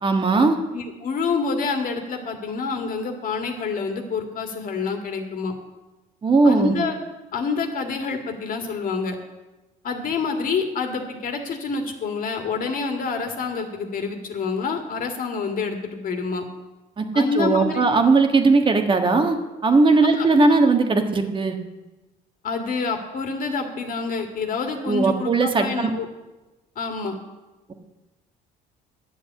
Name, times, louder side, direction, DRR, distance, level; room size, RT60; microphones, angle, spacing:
voice 1, 0.0-0.5 6.2-6.7 17.0-19.4 19.6-21.6 24.9-25.9, right 3 dB, 30° right, 5 dB, 1.4 m, -18 dB
voice 2, 0.7-5.5 6.4-7.0 7.3-9.2 9.8-16.5 17.1-17.9 20.0-20.3 22.4-26.1 26.8-27.1, left 4 dB, 55° left, 4 dB, 2.0 m, -27 dB
10.0 x 7.4 x 8.4 m, 1.1 s
cardioid pair, 110°, 17 cm